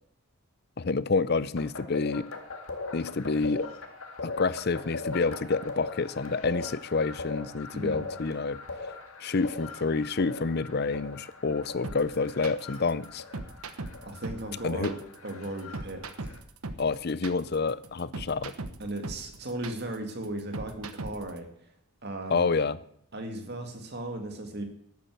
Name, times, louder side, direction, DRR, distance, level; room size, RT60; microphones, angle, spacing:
voice 1, 0.8-2.3 2.9-3.7 4.2-8.6 9.2-13.2 14.6-14.9 16.8-18.5 22.3-22.8, left 4 dB, 50° left, 0.6 m, -28 dB
sound 1, 1.6-16.4, left 3 dB, 75° left, 1.9 m, -41 dB
voice 2, 7.7-8.1 14.0-15.0 15.2-16.4 18.8-21.5 22.0-22.5 23.1-24.6, right 1 dB, 50° right, 2.3 m, -36 dB
sound 2, 11.8-21.4, right 2 dB, 90° right, 1.1 m, -39 dB
12.0 x 8.7 x 7.8 m
head